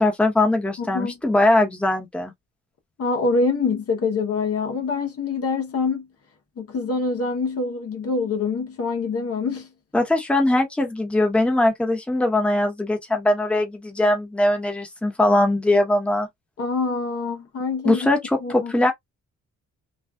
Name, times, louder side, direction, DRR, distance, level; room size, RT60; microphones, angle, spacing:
voice 1, 0.0-2.3 9.9-16.3 17.8-18.9, left 1 dB, 5° left, 0.9 m, -21 dB
voice 2, 0.8-1.1 3.0-6.1 6.6-9.7 16.6-18.1 18.4-18.7, left 4 dB, 50° left, 0.8 m, -25 dB
2.5 x 2.3 x 2.2 m
cardioid pair, 90°, 30 cm